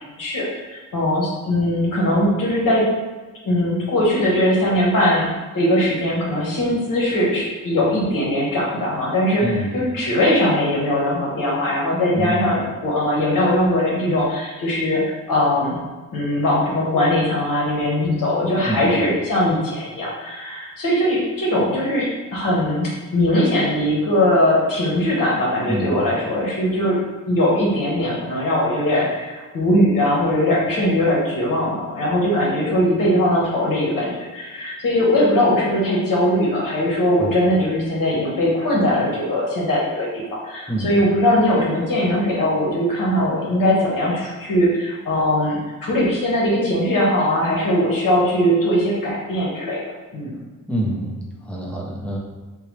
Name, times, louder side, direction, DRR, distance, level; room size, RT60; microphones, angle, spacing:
voice 1, 0.0-2.9 3.4-5.3 5.5-15.8 16.1-22.1 22.3-27.0 27.3-49.8 50.1-50.4, left 1 dB, 80° left, -4 dB, 1.2 m, -20 dB
voice 2, 9.4-9.8 12.2-12.5 18.7-18.9 25.7-26.0 37.2-37.3 40.7-41.0 50.7-52.2, right 1 dB, 5° left, -3 dB, 0.6 m, -26 dB
3.8 x 2.2 x 3.2 m, 1.3 s
wide cardioid pair, 140°, 33 cm